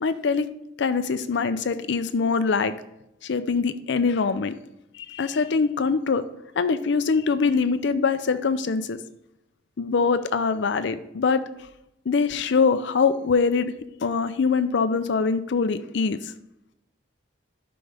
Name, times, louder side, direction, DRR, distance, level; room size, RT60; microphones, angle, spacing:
voice 1, 0.0-0.5 0.8-2.7 3.2-4.5 4.9-6.2 6.6-9.0 9.8-11.4 12.1-13.7 14.0-16.3, left 5 dB, 65° left, 12 dB, 0.5 m, -23 dB
11.5 x 5.1 x 3.4 m, 0.85 s
head